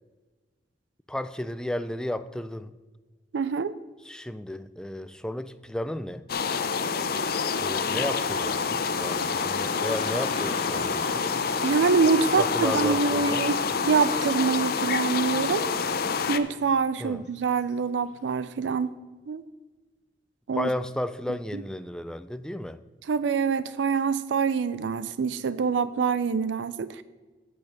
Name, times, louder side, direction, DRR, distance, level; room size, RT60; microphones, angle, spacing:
voice 1, 1.1-2.7 4.0-6.2 7.6-11.3 12.4-13.5 17.0-17.2 20.5-22.8, left 1 dB, 5° left, 0.3 m, -33 dB
voice 2, 3.3-3.7 11.6-13.6 13.9-15.7 16.3-18.9 19.3-19.4 20.5-20.7 23.1-27.0, right 5 dB, 80° right, 0.4 m, -25 dB
sound 1, 6.3-16.4, left 5 dB, 55° left, 0.6 m, -27 dB
Car passing by / Traffic noise roadway noise, 9.4-18.5, left 2 dB, 40° left, 1.4 m, -46 dB
8.6 x 6.4 x 6.5 m
head